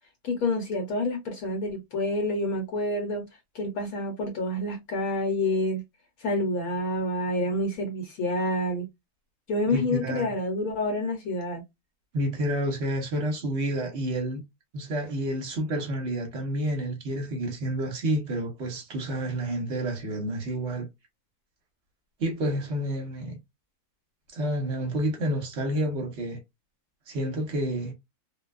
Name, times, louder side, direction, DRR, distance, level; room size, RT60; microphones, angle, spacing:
voice 1, 0.2-3.3 3.5-5.8 6.2-8.8 9.5-11.6, left 1 dB, 70° left, 1.2 m, -28 dB
voice 2, 9.7-10.3 12.1-14.4 14.7-20.9 22.2-23.4 24.3-26.4 27.1-27.9, right 1 dB, 55° right, 1.0 m, -29 dB
2.6 x 2.2 x 2.3 m
omnidirectional pair, 1.7 m